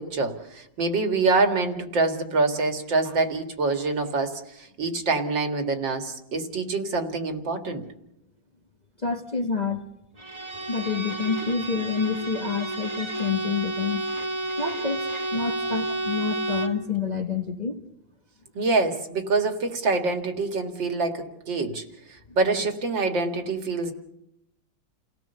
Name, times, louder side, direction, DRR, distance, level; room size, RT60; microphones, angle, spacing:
voice 1, 0.0-7.8 18.6-21.8 22.4-23.9, right 3 dB, 65° right, 6 dB, 2.8 m, -25 dB
voice 2, 9.0-9.8 10.7-14.0 14.6-17.8, left 5 dB, 25° left, 3 dB, 1.3 m, -28 dB
Bowed string instrument, 10.2-16.9, right 2 dB, 15° right, 2.1 m, -31 dB
30.0 x 17.5 x 7.0 m, 0.81 s
omnidirectional pair, 2.2 m